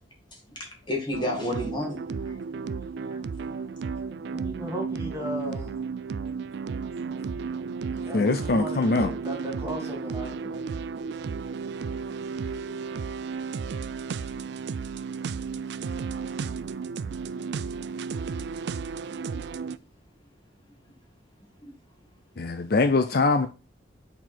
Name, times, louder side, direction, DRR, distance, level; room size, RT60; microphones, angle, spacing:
voice 1, 0.3-2.3 19.3-19.4 21.6-21.7, left 1 dB, 25° left, 2.2 m, -32 dB
sound 1, 1.1-19.8, right 5 dB, 65° right, 0.3 m, -33 dB
voice 2, 2.8-3.7 4.1-5.8 7.0-7.1 7.9-10.7, equal, 15° right, 2.6 m, -38 dB
voice 3, 8.1-9.1 22.4-23.5, left 3 dB, 55° left, 0.5 m, -22 dB
8.2 x 4.5 x 4.4 m
head